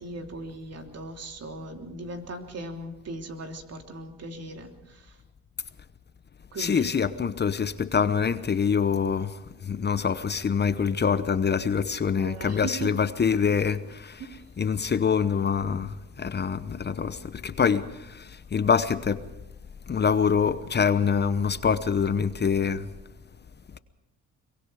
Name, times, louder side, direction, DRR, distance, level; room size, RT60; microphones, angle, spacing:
voice 1, 0.0-5.2 6.5-6.9 12.1-12.9 14.2-14.3, right 2 dB, 55° right, 3.2 m, -38 dB
voice 2, 6.6-14.3 14.6-19.2 19.9-22.9, left 6 dB, 35° left, 0.9 m, -25 dB
23.5 x 23.0 x 4.9 m
cardioid pair, 90°, 30 cm